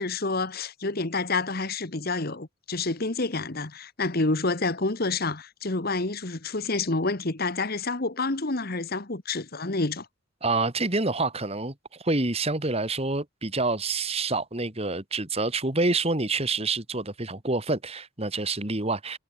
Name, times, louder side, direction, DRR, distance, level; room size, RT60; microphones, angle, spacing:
voice 1, 0.0-10.1, left 3 dB, 50° left, 1.5 m, -28 dB
voice 2, 10.4-11.7 12.0-19.2, right 3 dB, 30° right, 2.2 m, -27 dB
head